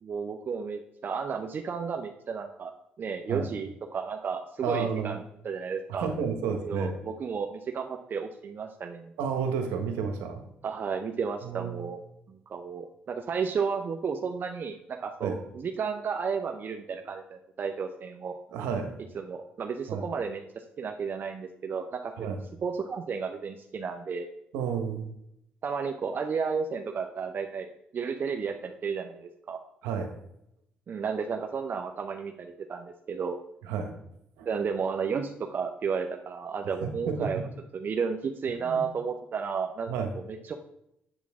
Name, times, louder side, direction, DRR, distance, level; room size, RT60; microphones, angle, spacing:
voice 1, 0.0-2.7 3.0-6.1 6.6-9.1 10.6-12.0 12.3-18.4 19.1-22.3 22.6-24.3 25.6-27.7 27.9-29.6 30.9-33.4 34.4-37.4 37.7-40.5, right 5 dB, 50° right, 4 dB, 0.8 m, -33 dB
voice 2, 4.6-5.2 5.9-6.9 9.2-10.4 11.4-11.9 15.2-15.4 18.5-18.9 19.9-20.0 22.2-22.4 24.5-25.1 29.8-30.1 33.7-33.9 34.4-34.5 36.6-37.4 38.6-38.8 39.9-40.1, right 6 dB, 85° right, 5 dB, 1.2 m, -31 dB
8.2 x 7.4 x 3.7 m, 0.79 s
supercardioid pair, 65°, 4 cm